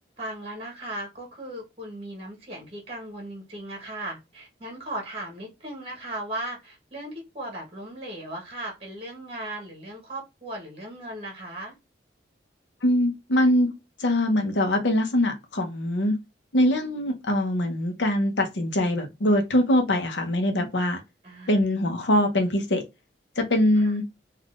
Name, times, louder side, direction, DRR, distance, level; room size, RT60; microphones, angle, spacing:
voice 1, 0.2-11.7 21.2-21.6 23.7-23.9, right 1 dB, 30° right, 1.0 m, -37 dB
voice 2, 12.8-13.7 14.0-16.2 16.5-21.0 21.5-22.8 23.4-24.0, left 1 dB, 80° left, 0.8 m, -23 dB
3.5 x 2.4 x 2.4 m
head